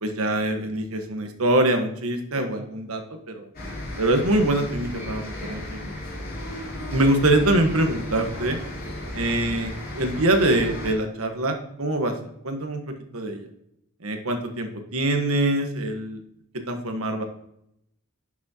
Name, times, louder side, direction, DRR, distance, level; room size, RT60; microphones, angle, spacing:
voice 1, 0.0-3.5 4.0-5.9 6.9-8.6 9.1-12.1 12.4-12.8 13.1-13.5 14.0-16.2 16.7-17.2, right 1 dB, 85° right, 5 dB, 1.4 m, -24 dB
sound 1, 3.5-10.9, left 1 dB, 45° left, 3.5 m, -34 dB
11.0 x 6.2 x 2.9 m, 0.77 s
head